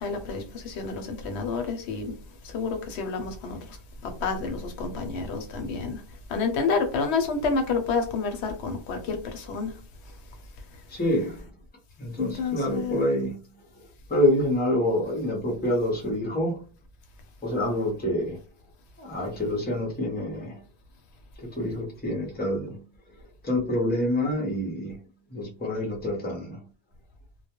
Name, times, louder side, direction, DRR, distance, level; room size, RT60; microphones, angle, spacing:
voice 1, 0.0-2.1 2.5-3.6 4.0-6.0 6.3-9.7 12.2-13.0, left 4 dB, 75° left, 0.8 m, -29 dB
voice 2, 10.9-11.4 12.0-13.4 13.8-16.6 17.4-18.4 19.0-20.6 21.4-22.8 23.4-25.0 25.3-26.6, left 1 dB, 10° left, 0.5 m, -27 dB
2.2 x 2.1 x 2.8 m
omnidirectional pair, 1.1 m